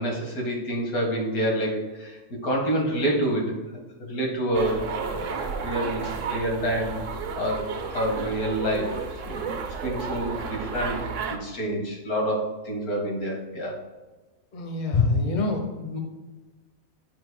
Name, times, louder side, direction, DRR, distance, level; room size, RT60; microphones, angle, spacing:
voice 1, 0.0-3.6 4.0-6.9 7.4-9.5 9.8-11.0 11.3-13.8, right 1 dB, 85° left, 0 dB, 1.9 m, -28 dB
sound 1, 4.5-11.4, right 5 dB, 65° right, 1.0 m, -32 dB
voice 2, 14.5-16.0, left 4 dB, 35° left, 2 dB, 1.0 m, -25 dB
9.2 x 5.8 x 2.2 m, 1.2 s
omnidirectional pair, 1.5 m